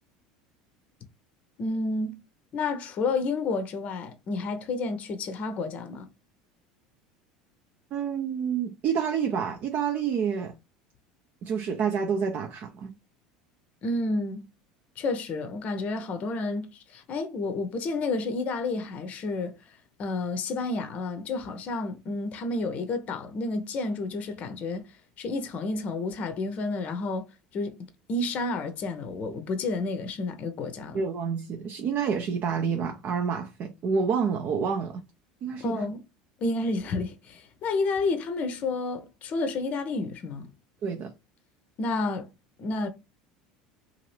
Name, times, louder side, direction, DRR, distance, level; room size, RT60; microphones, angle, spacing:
voice 1, 1.6-2.2 2.5-6.1 13.8-14.4 15.0-19.6 20.0-24.9 25.2-27.3 27.5-27.8 28.1-31.0 35.6-36.0 36.4-40.5 41.8-42.3 42.6-42.9, left 3 dB, 45° left, 0.6 m, -30 dB
voice 2, 7.9-10.5 11.4-12.9 30.9-35.0 35.4-35.8 40.8-41.1, right 6 dB, 50° right, 0.5 m, -28 dB
2.8 x 2.5 x 3.1 m
hypercardioid pair, 75°, 3 cm